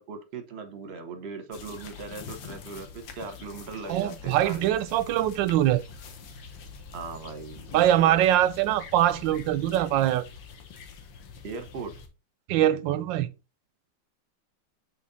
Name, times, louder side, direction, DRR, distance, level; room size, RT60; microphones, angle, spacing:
voice 1, 0.0-4.7 6.9-7.7 8.0-8.2 11.4-11.9, right 4 dB, 45° right, 1.0 m, -39 dB
sound 1, 1.5-12.1, left 6 dB, 85° left, 1.7 m, -46 dB
voice 2, 3.9-5.8 7.7-10.2 12.5-13.3, right 12 dB, 90° right, 1.3 m, -23 dB
sound 2, 4.5-10.1, left 2 dB, 50° left, 2.4 m, -50 dB
6.2 x 3.8 x 4.0 m
omnidirectional pair, 2.0 m